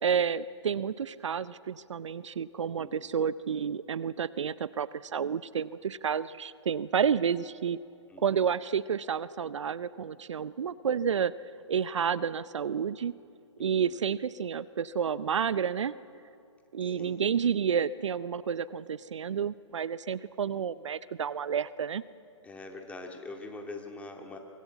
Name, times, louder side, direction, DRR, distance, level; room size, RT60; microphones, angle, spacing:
voice 1, 0.0-7.8 8.2-11.3 11.7-13.1 13.6-15.9 16.7-22.0, right 7 dB, 70° right, 17 dB, 0.7 m, -30 dB
voice 2, 2.8-3.2 8.1-8.5 13.6-14.0 16.8-17.2 22.4-24.4, left 3 dB, 10° left, 3 dB, 2.1 m, -44 dB
24.0 x 19.5 x 8.2 m, 2.5 s
hypercardioid pair, 135°, 16 cm